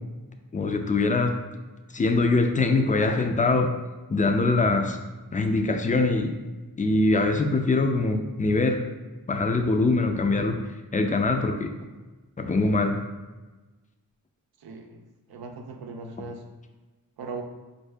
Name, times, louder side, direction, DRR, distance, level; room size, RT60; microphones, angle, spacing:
voice 1, 0.5-1.3 1.9-3.7 4.1-5.0 5.3-6.3 6.8-8.8 9.3-10.6 10.9-11.7 12.4-13.0, left 3 dB, 20° left, 5 dB, 0.4 m, -23 dB
voice 2, 14.6-15.0 15.3-16.4 17.2-17.4, right 4 dB, 80° right, 3 dB, 0.6 m, -38 dB
4.4 x 2.7 x 3.3 m, 1.2 s
wide cardioid pair, 70°, 36 cm